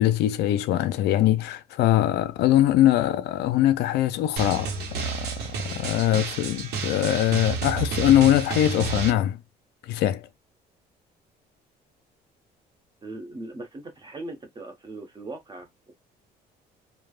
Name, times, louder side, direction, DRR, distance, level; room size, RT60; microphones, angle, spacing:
voice 1, 0.0-4.7 5.0-9.4 9.9-10.3, left 12 dB, 75° left, 0.4 m, -22 dB
Drum, 4.4-9.1, right 5 dB, 80° right, 0.9 m, -30 dB
voice 2, 13.0-15.9, right 2 dB, 25° right, 1.0 m, -39 dB
3.2 x 2.1 x 2.4 m
cardioid pair, 110°, 17 cm